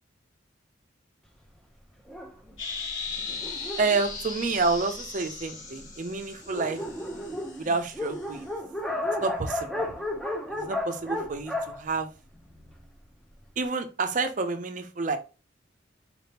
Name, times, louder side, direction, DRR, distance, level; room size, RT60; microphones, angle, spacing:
Dog, 2.1-5.1 5.8-5.9 6.1-6.2 6.4-12.8, left 1 dB, ahead, 0.6 m, -34 dB
sound 1, 2.6-8.4, left 4 dB, 90° left, 2.2 m, -38 dB
voice 1, 3.8-6.8 7.6-8.5 9.2-9.9 10.5-12.1 13.6-15.2, right 3 dB, 40° right, 7 dB, 0.5 m, -29 dB
4.3 x 3.4 x 2.8 m, 0.32 s
head